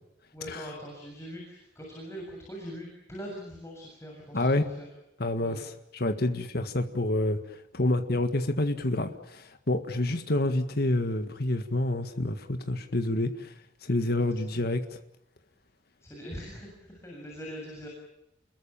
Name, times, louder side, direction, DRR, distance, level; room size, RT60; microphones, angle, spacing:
voice 1, 0.3-4.9 5.4-5.6 14.2-14.7 16.0-17.9, equal, 15° left, -1 dB, 7.3 m, -42 dB
voice 2, 4.3-4.7 5.2-13.5 13.8-14.8, left 1 dB, 55° left, 7 dB, 1.8 m, -28 dB
29.5 x 22.0 x 7.2 m, 0.84 s
head